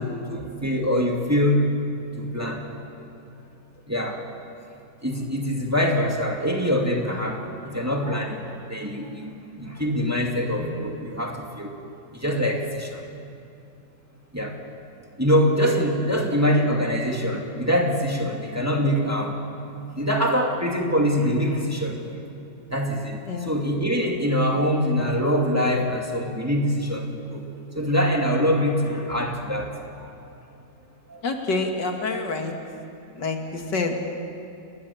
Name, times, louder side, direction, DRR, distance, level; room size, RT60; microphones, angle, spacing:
voice 1, 0.0-1.7 2.2-2.7 2.9-3.0 3.9-4.2 5.0-11.7 12.1-13.0 14.3-14.6 15.2-19.4 19.9-22.0 22.7-27.5 27.7-29.7 31.1-31.2, equal, 10° right, 0 dB, 2.4 m, -24 dB
voice 2, 31.2-32.5 33.2-33.9, left 3 dB, 90° left, 3 dB, 2.8 m, -27 dB
30.0 x 20.5 x 7.2 m, 2.6 s
omnidirectional pair, 1.8 m